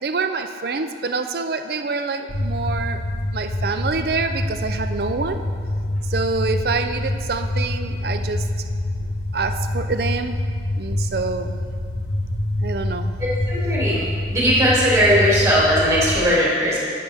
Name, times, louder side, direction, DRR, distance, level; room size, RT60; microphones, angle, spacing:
voice 1, 0.0-3.0 3.3-5.4 6.1-8.5 9.3-10.4 10.7-11.6 12.6-13.1, right 4 dB, 60° right, 8 dB, 0.5 m, -26 dB
sound 1, 2.3-16.2, left 1 dB, 70° left, 0.7 m, -26 dB
voice 2, 13.2-14.0 14.3-16.8, equal, 15° right, -7 dB, 2.5 m, -18 dB
11.0 x 8.5 x 3.5 m, 2.1 s
head